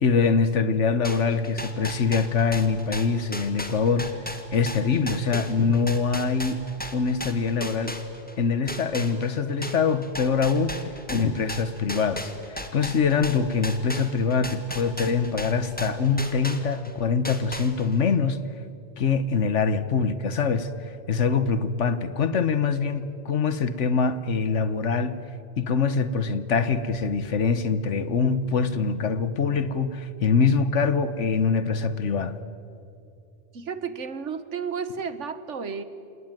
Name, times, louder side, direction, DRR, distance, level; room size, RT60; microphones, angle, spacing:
voice 1, 0.0-4.1 4.5-6.7 6.9-7.9 8.4-10.8 11.1-18.4 19.0-20.7 21.1-25.2 25.6-32.4, left 5 dB, 85° left, 13 dB, 1.5 m, -24 dB
sound 1, 1.0-8.4 8.7-16.9 17.2-18.1, equal, 5° left, 1.8 m, -36 dB
voice 2, 33.5-35.8, right 6 dB, 80° right, 12 dB, 1.6 m, -32 dB
27.5 x 19.0 x 9.1 m, 2.7 s
omnidirectional pair, 1.2 m